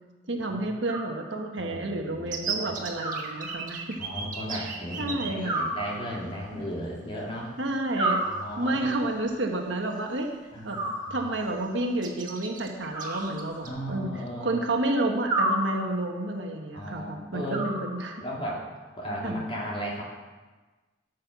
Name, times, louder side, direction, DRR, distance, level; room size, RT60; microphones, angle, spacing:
voice 1, 0.3-4.0 4.5-4.7 5.0-5.7 7.6-8.2 8.6-10.3 10.6-10.8 11.1-14.1 14.4-18.2 19.2-19.4, right 1 dB, 80° right, 3 dB, 1.3 m, -30 dB
Animal, 0.8-1.7 3.0-4.0 5.5-6.5 8.0-9.0 10.7-11.6 12.9-14.0 15.3-16.2 17.5-18.4, right 2 dB, 20° right, 2.3 m, -32 dB
voice 2, 1.6-2.7 4.0-7.5 8.1-9.0 10.5-11.2 13.6-14.5 16.7-17.6 18.2-18.6 19.0-20.0, equal, 30° left, -4 dB, 2.7 m, -36 dB
sound 1, 2.3-5.3 6.3-6.4 6.7-6.9 8.5-8.6 9.1-9.3 9.7-10.4 10.8-10.9 11.2-11.6 12.0-13.7, right 5 dB, 45° right, 1.4 m, -36 dB
12.5 x 6.5 x 6.0 m, 1.3 s
head